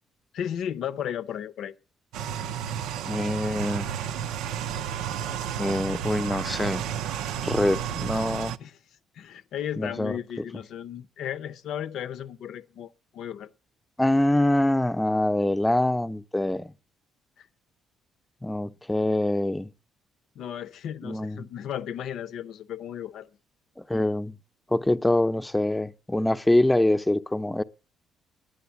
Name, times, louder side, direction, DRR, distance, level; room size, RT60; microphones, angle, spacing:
voice 1, 0.3-1.7 8.6-8.7 9.1-13.5 17.4-17.5 20.4-23.3, left 9 dB, 70° left, 0.6 m, -35 dB
sound 1, 2.1-8.6, right 9 dB, 75° right, 0.5 m, -32 dB
voice 2, 3.0-3.9 5.5-6.8 7.4-8.6 9.8-10.2 14.0-16.7 18.4-19.7 21.0-21.5 23.8-24.4 24.7-27.6, left 1 dB, 10° left, 0.7 m, -24 dB
10.0 x 9.6 x 7.1 m
hypercardioid pair, 60°, 0 cm